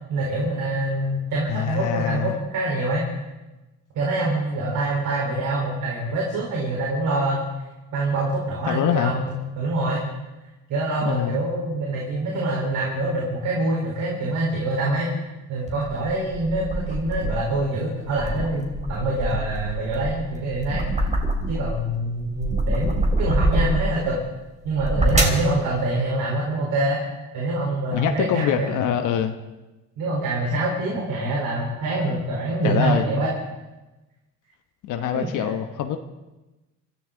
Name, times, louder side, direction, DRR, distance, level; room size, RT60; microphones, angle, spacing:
voice 1, 0.1-3.0 3.9-7.4 7.9-9.3 9.6-10.0 10.7-15.1 15.5-20.8 21.5-24.2 24.6-27.0 27.3-28.8 30.0-33.3 35.0-35.5, right 2 dB, 85° right, -4 dB, 4.2 m, -25 dB
voice 2, 1.5-2.3 8.7-9.1 11.0-11.4 27.9-29.4 32.6-33.1 34.8-36.0, left 9 dB, 85° left, 6 dB, 1.1 m, -24 dB
sound 1, 15.7-17.6 18.0-21.8 22.2-24.0 24.6-25.5, right 1 dB, 25° right, 3.3 m, -25 dB
25.5 x 14.0 x 3.9 m, 1.1 s
cardioid pair, 90°, 30 cm